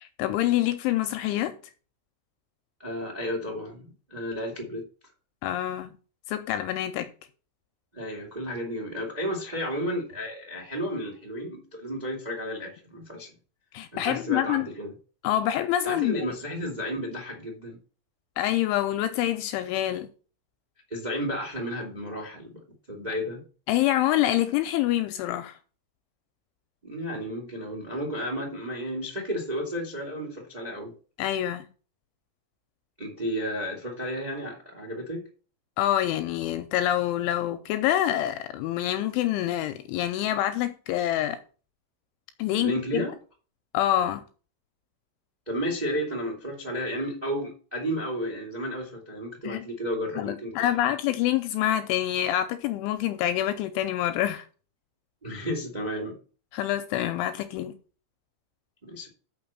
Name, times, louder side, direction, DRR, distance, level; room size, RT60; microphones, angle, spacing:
voice 1, 0.0-1.6 5.4-5.9 6.3-7.1 13.7-14.7 15.2-16.2 18.4-20.1 23.7-25.6 31.2-31.7 35.8-41.4 42.4-43.1 43.7-44.2 49.4-49.7 50.2-54.4 56.5-57.7, left 13 dB, 85° left, 2.9 m, -26 dB
voice 2, 2.8-4.8 7.9-13.3 13.9-14.9 15.8-17.8 20.9-22.6 22.9-23.4 26.8-30.9 33.0-35.3 42.6-43.1 45.4-50.5 50.8-50.9 55.2-56.2 58.8-59.1, equal, 40° right, 0.5 m, -32 dB
6.6 x 6.1 x 7.2 m
omnidirectional pair, 5.9 m